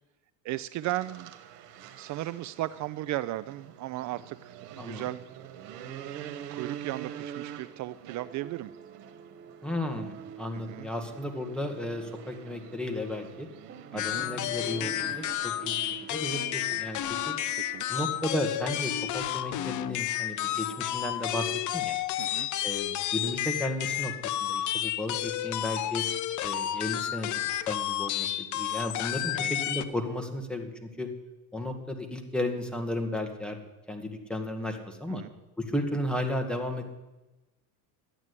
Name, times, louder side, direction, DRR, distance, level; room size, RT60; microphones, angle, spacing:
voice 1, 0.4-1.3 2.0-5.2 6.5-8.7 10.5-10.9 13.9-14.2 17.6-18.0 22.2-22.5 29.3-29.5 35.1-35.3, right 16 dB, 40° right, 16 dB, 0.4 m, -36 dB
sound 1, 0.8-16.3, right 9 dB, 85° right, 1.6 m, -46 dB
voice 2, 4.8-5.1 9.6-13.5 13.9-17.4 17.9-22.0 22.6-26.1 26.4-31.1 31.5-33.6 33.9-35.2 35.6-36.9, left 1 dB, ahead, 3 dB, 2.0 m, -34 dB
sound 2, 8.2-21.0, right 8 dB, 25° right, 1.0 m, -49 dB
sound 3, 14.0-29.8, left 12 dB, 40° left, 0.8 m, -31 dB
12.5 x 9.0 x 9.7 m, 1.1 s
supercardioid pair, 120°, 46 cm